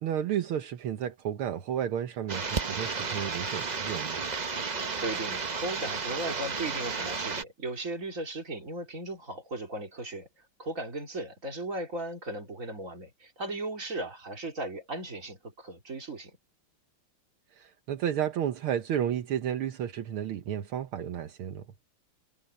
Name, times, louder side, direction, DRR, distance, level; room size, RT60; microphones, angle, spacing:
voice 1, 0.0-4.2 17.5-21.6, right 9 dB, 75° right, 1.9 m, -32 dB
sound 1, 2.3-7.4, right 4 dB, 55° right, 0.4 m, -33 dB
voice 2, 5.0-16.4, right 2 dB, 35° right, 3.9 m, -37 dB
omnidirectional pair, 2.4 m